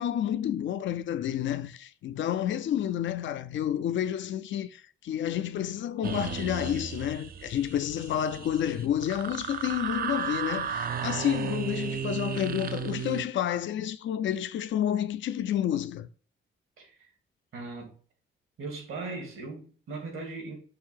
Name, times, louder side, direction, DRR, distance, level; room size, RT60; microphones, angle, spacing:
voice 1, 0.0-16.1, left 10 dB, 65° left, 0.5 m, -30 dB
sound 1, 6.0-13.2, right 7 dB, 45° right, 0.5 m, -34 dB
voice 2, 16.8-17.1 17.5-18.0 18.6-20.6, right 3 dB, 80° right, 2.3 m, -39 dB
6.6 x 2.7 x 5.5 m
wide cardioid pair, 140°, 21 cm